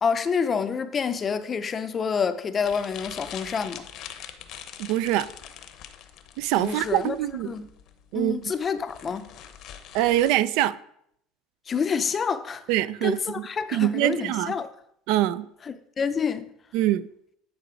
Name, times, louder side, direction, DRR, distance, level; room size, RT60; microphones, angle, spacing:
voice 1, 0.0-3.8 6.6-7.2 7.5-7.7 8.1-9.3 11.7-12.6 13.0-14.7 15.7-16.5, left 6 dB, 25° left, 0.5 m, -28 dB
sound 1, 2.6-10.4, left 9 dB, 55° left, 0.8 m, -43 dB
voice 2, 4.8-5.3 6.4-7.5 8.1-8.5 9.9-10.7 12.7-14.5 15.1-15.5 16.7-17.1, right 14 dB, 70° right, 0.3 m, -24 dB
9.6 x 4.0 x 4.9 m
cardioid pair, 135°, 0 cm